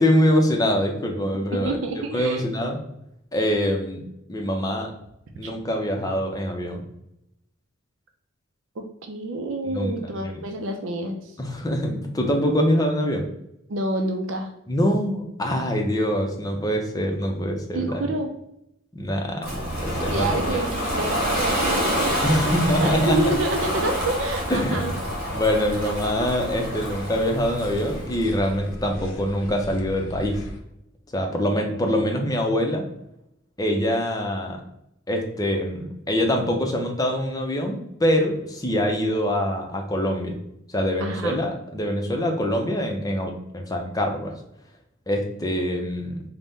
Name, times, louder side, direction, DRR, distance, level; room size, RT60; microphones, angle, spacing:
voice 1, 0.0-2.8 3.3-4.0 4.3-4.9 5.4-6.8 9.7-10.4 11.4-13.3 14.7-18.0 18.9-20.6 22.2-23.2 24.5-25.0 25.3-30.4 31.1-32.8 33.6-34.6 35.1-40.4 40.7-44.3 45.1-46.2, equal, 20° left, 2 dB, 0.6 m, -24 dB
voice 2, 1.5-2.4 5.4-5.5 8.8-11.4 13.7-14.5 17.7-18.3 20.1-22.5 22.8-24.9 41.0-41.4, right 2 dB, 70° right, 4 dB, 0.5 m, -28 dB
Ocean, 19.4-28.3, equal, 50° right, 1.4 m, -27 dB
sound 1, 19.7-30.6, left 1 dB, 80° left, 0.6 m, -37 dB
3.9 x 2.1 x 3.5 m, 0.81 s
head